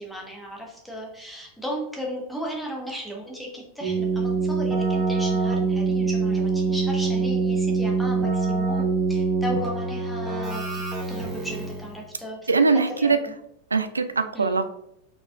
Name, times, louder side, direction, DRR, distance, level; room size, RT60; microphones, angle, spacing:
voice 1, 0.0-10.6 11.1-12.5 13.0-13.3 14.3-14.6, equal, ahead, -2 dB, 1.3 m, -35 dB
Keyboard (musical), 3.8-11.9, right 4 dB, 20° right, 1.3 m, -24 dB
voice 2, 12.5-13.2 13.7-14.6, right 4 dB, 75° right, 10 dB, 0.3 m, -21 dB
4.8 x 4.0 x 2.4 m, 0.79 s
figure-of-eight pair, 90°, 0 cm